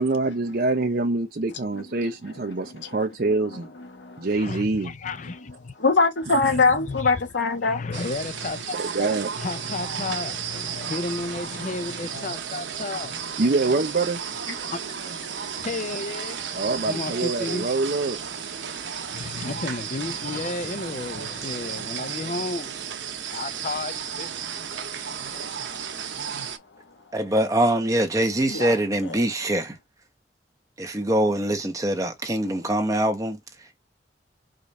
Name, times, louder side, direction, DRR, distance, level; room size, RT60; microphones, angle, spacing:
voice 1, 0.0-3.7 4.2-4.9 8.7-9.3 13.4-14.2 16.5-18.2, right 3 dB, 55° right, 0.6 m, -25 dB
voice 2, 4.3-5.7 6.5-7.1 7.6-9.1 9.4-13.4 14.6-14.8 15.1-15.2 15.6-17.7 18.6-18.8 19.1-22.7 23.1-24.6 25.3-25.4, left 3 dB, 45° left, 0.6 m, -33 dB
voice 3, 5.8-7.8 28.5-28.7, left 4 dB, 90° left, 1.2 m, -21 dB
sound 1, 7.9-26.6, right 7 dB, 90° right, 0.8 m, -33 dB
voice 4, 27.1-29.8 30.8-33.4, right 1 dB, 20° right, 1.0 m, -23 dB
5.0 x 2.5 x 4.1 m
head